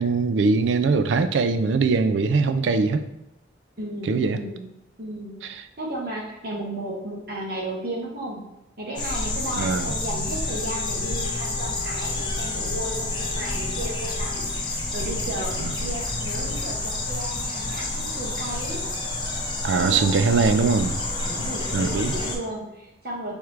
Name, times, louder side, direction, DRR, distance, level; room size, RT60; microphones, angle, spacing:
voice 1, 0.0-3.1 4.1-4.4 9.6-9.9 15.6-15.7 19.6-21.0 21.7-22.1, right 4 dB, 90° right, 10 dB, 0.4 m, -21 dB
voice 2, 3.8-4.7 5.0-5.3 5.8-8.4 8.8-18.8 19.7-20.3 21.2-23.3, right 1 dB, 55° right, -2 dB, 1.2 m, -34 dB
sound 1, 9.0-22.4, left 2 dB, 25° left, 0.7 m, -29 dB
sound 2, 10.4-14.6, left 10 dB, 90° left, 0.5 m, -42 dB
sound 3, 13.4-16.5, left 1 dB, 5° right, 1.1 m, -48 dB
4.6 x 3.6 x 3.2 m, 0.90 s
head